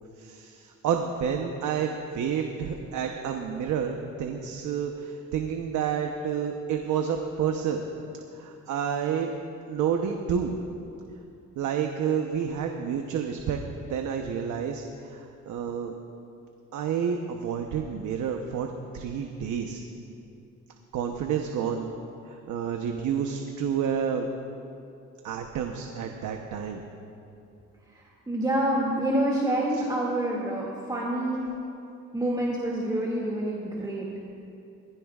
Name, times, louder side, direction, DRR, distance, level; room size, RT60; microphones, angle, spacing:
voice 1, 0.2-7.8 8.3-9.3 9.7-10.6 11.6-13.6 13.9-16.0 16.7-18.7 18.9-19.8 20.9-21.9 22.3-24.3 25.2-26.8, right 7 dB, 75° right, 3 dB, 0.9 m, -29 dB
voice 2, 27.9-31.5 32.1-34.1, right 1 dB, 15° right, -4 dB, 2.2 m, -27 dB
21.5 x 16.0 x 2.4 m, 2.7 s
cardioid pair, 90°, 30 cm